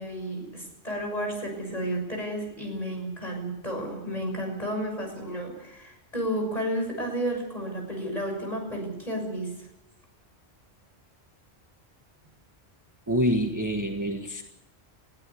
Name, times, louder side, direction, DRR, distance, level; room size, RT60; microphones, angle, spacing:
voice 1, 0.0-9.5, equal, 35° left, 2 dB, 6.6 m, -32 dB
voice 2, 13.1-14.4, equal, 15° right, 3 dB, 1.5 m, -26 dB
21.5 x 15.5 x 8.5 m, 0.91 s
omnidirectional pair, 1.1 m